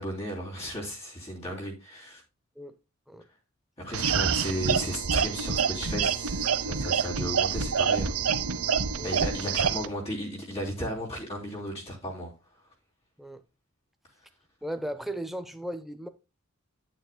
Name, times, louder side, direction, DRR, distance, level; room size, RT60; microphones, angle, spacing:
voice 1, 0.0-2.2 3.8-8.2 9.0-12.3, equal, 30° left, 3.2 m, -35 dB
sound 1, 3.9-9.9, right 6 dB, 90° right, 0.8 m, -27 dB
voice 2, 14.6-16.1, right 1 dB, ahead, 0.7 m, -36 dB
9.5 x 9.1 x 2.2 m
head